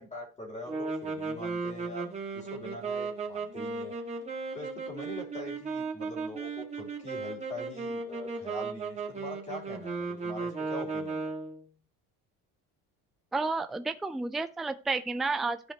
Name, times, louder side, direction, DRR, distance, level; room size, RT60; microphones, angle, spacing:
voice 1, 0.0-4.0 4.5-11.3, equal, 20° left, -1 dB, 3.1 m, -43 dB
sound 1, 0.7-11.6, right 4 dB, 20° right, 1.8 m, -36 dB
voice 2, 13.3-15.7, right 3 dB, ahead, 9 dB, 0.4 m, -31 dB
14.0 x 4.9 x 2.9 m, 0.35 s
cardioid pair, 135°, 36 cm